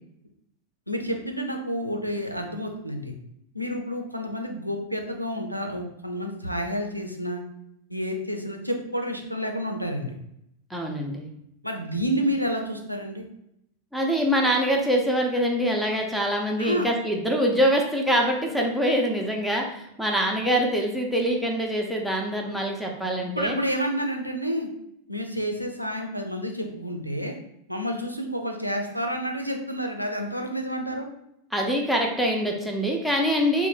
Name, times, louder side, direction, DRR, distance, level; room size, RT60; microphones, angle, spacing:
voice 1, 0.9-3.2 3.5-7.4 7.9-10.1 11.6-13.2 16.6-16.9 23.3-24.7 25.1-27.4 27.7-31.1, equal, 90° right, 3 dB, 0.5 m, -29 dB
voice 2, 10.7-11.3 13.9-23.6 31.5-33.7, equal, ahead, 0 dB, 0.7 m, -24 dB
4.0 x 2.2 x 3.8 m, 0.78 s
figure-of-eight pair, 90°, 0 cm